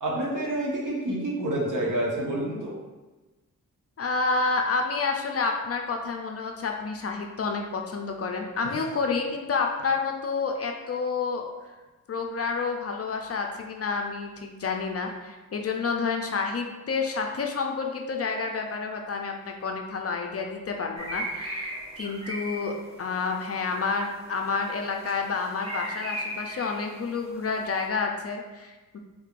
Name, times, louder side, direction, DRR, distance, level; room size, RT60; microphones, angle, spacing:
voice 1, 0.0-2.7, right 1 dB, 60° right, -4 dB, 1.1 m, -28 dB
voice 2, 4.0-11.5 12.1-29.0, left 4 dB, 45° left, 3 dB, 0.4 m, -29 dB
sound 1, 21.0-27.9, right 1 dB, 15° right, 0.8 m, -38 dB
3.8 x 3.0 x 2.5 m, 1.2 s
cardioid pair, 70°, 34 cm